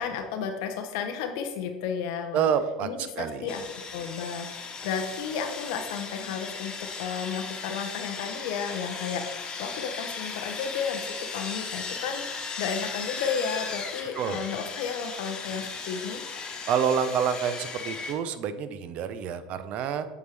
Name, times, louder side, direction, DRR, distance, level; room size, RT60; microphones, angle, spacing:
voice 1, 0.0-2.4 2.8-3.6 3.9-12.2 12.6-16.2, left 6 dB, 65° left, 5 dB, 0.6 m, -33 dB
voice 2, 2.3-2.9 3.2-3.5 14.2-14.4 16.7-20.1, right 7 dB, 50° right, 12 dB, 0.5 m, -27 dB
Sawing, 3.5-18.1, left 5 dB, 30° left, 1.1 m, -37 dB
8.1 x 4.6 x 3.3 m, 1.2 s
hypercardioid pair, 80°, 3 cm